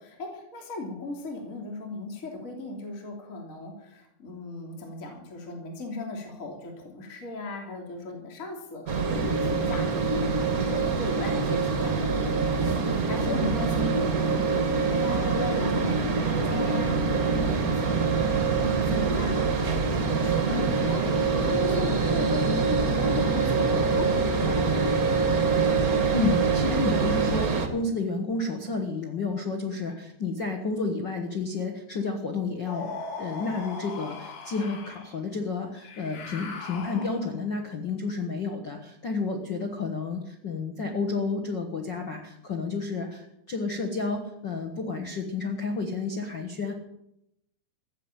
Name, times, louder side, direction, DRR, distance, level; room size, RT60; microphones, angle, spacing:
voice 1, 0.0-24.9, left 2 dB, 25° left, 1 dB, 2.9 m, -37 dB
sound 1, 8.9-27.7, right 4 dB, 80° right, 0.8 m, -25 dB
voice 2, 26.1-46.7, left 3 dB, 65° left, 3 dB, 1.0 m, -31 dB
sound 2, 32.7-35.1 35.8-37.4, left 3 dB, 85° left, 4.5 m, -39 dB
15.0 x 8.2 x 9.0 m, 0.81 s
omnidirectional pair, 4.4 m